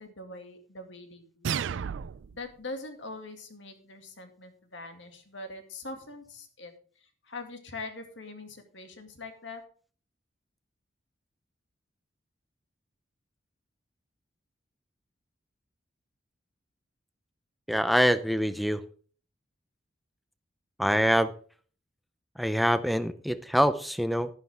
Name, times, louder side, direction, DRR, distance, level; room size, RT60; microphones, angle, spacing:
voice 1, 0.0-1.5 2.3-6.7 7.2-9.6, left 2 dB, 75° left, 5 dB, 2.2 m, -42 dB
sound 1, 1.4-2.4, right 7 dB, 80° right, 0.4 m, -32 dB
voice 2, 17.7-18.8 20.8-21.3 22.4-24.3, equal, ahead, 12 dB, 0.6 m, -25 dB
11.5 x 11.0 x 3.6 m, 0.43 s
head